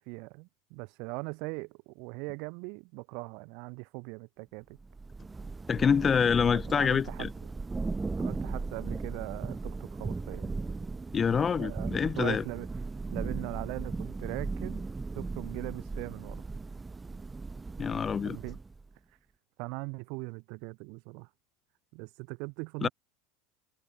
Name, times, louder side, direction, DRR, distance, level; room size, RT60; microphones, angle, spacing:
voice 1, 0.0-4.8 6.7-7.3 8.2-10.5 11.6-12.7 13.1-14.8 15.1-16.4 18.2-18.6 19.6-21.3 21.9-22.9, right 32 dB, 65° right, 4.7 m, -40 dB
Thunder / Rain, 4.8-18.9, right 3 dB, 15° right, 1.2 m, -37 dB
voice 2, 5.7-7.3 11.1-12.4 17.8-18.4 22.8-22.9, left 6 dB, 25° left, 0.4 m, -26 dB
hypercardioid pair, 100°, 0 cm